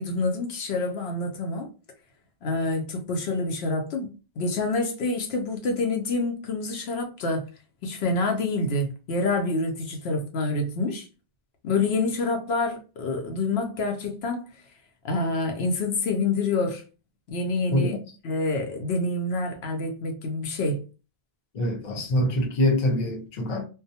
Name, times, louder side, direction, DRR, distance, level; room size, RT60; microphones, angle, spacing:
voice 1, 0.0-1.7 2.4-4.1 4.4-7.4 7.8-11.1 11.6-14.4 15.0-16.8 17.3-18.0 18.2-20.8, left 3 dB, 80° left, 0.8 m, -27 dB
voice 2, 21.5-23.6, left 1 dB, 50° left, 0.7 m, -24 dB
2.3 x 2.2 x 2.7 m
omnidirectional pair, 1.1 m